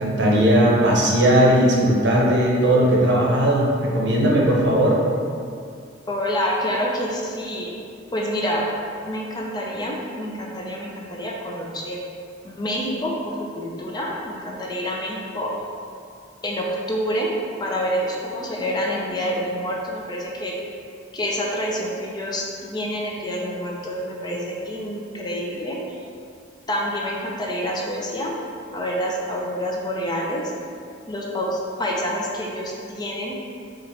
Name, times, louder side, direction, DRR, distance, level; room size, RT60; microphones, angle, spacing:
voice 1, 0.0-5.0, right 1 dB, 70° right, -4 dB, 0.8 m, -18 dB
voice 2, 6.1-7.7 8.1-8.7 9.1-12.0 12.4-15.5 16.4-17.3 17.6-20.6 21.1-25.8 26.7-28.3 28.7-30.4 31.1-33.4, equal, 20° left, -2 dB, 0.4 m, -27 dB
4.0 x 2.5 x 4.4 m, 2.4 s
head